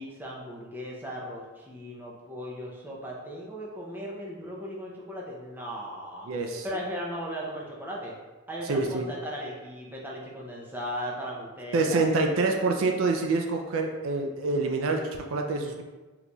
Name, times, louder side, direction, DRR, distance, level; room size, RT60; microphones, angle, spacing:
voice 1, 0.0-6.3 6.6-8.1 8.5-12.1, equal, 10° right, -4 dB, 0.5 m, -37 dB
voice 2, 6.3-6.7 8.7-9.1 11.7-15.8, right 3 dB, 65° right, 3 dB, 0.3 m, -26 dB
3.9 x 3.0 x 2.2 m, 1.2 s
head